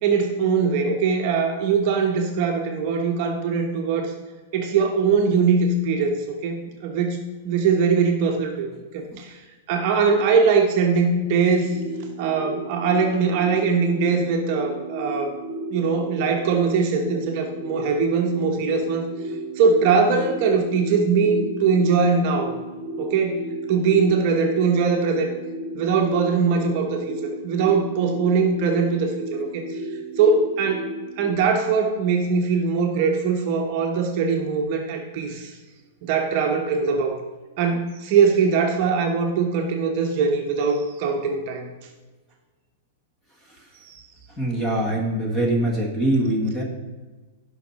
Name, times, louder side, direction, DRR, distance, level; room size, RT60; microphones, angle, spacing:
voice 1, 0.0-4.1 4.5-9.4 9.7-11.8 12.2-15.3 15.7-19.1 19.6-22.6 23.0-23.4 23.7-25.3 25.7-29.8 30.2-30.9 31.2-35.6 36.0-37.2 37.6-41.7 43.8-44.0, right 5 dB, 35° right, 2 dB, 1.0 m, -21 dB
sound 1, 11.5-31.4, right 1 dB, 15° right, 1.3 m, -34 dB
voice 2, 44.3-46.6, right 1 dB, 10° left, 0 dB, 1.5 m, -23 dB
17.0 x 5.8 x 4.2 m, 1.3 s
supercardioid pair, 180°, 0 cm